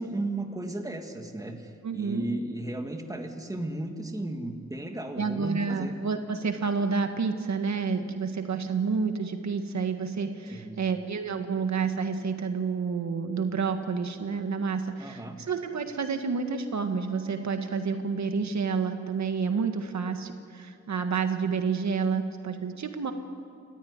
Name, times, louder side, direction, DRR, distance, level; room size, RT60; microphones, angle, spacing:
voice 1, 0.0-6.0 10.5-10.8 15.0-15.4, right 2 dB, 10° right, 4 dB, 1.8 m, -35 dB
voice 2, 1.8-2.3 5.2-23.1, right 5 dB, 65° right, 6 dB, 1.7 m, -29 dB
29.5 x 15.0 x 9.6 m, 2.5 s
wide cardioid pair, 155°, 30 cm